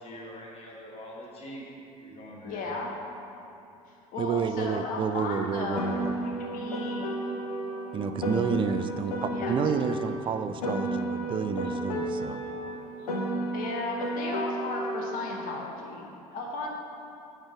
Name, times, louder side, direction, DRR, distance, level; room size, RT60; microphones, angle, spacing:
voice 1, 0.0-1.7 2.0-2.8, equal, 30° left, -3 dB, 1.1 m, -43 dB
voice 2, 2.4-2.9 3.9-7.3 9.3-9.5 13.5-16.7, left 3 dB, 45° left, 0 dB, 0.8 m, -35 dB
voice 3, 4.2-6.1 7.9-12.4, right 6 dB, 25° right, 10 dB, 0.3 m, -30 dB
Piano, 5.8-10.2 10.6-15.2, right 1 dB, 75° left, 0.8 m, -32 dB
8.9 x 3.4 x 4.8 m, 2.8 s
figure-of-eight pair, 65°, 19 cm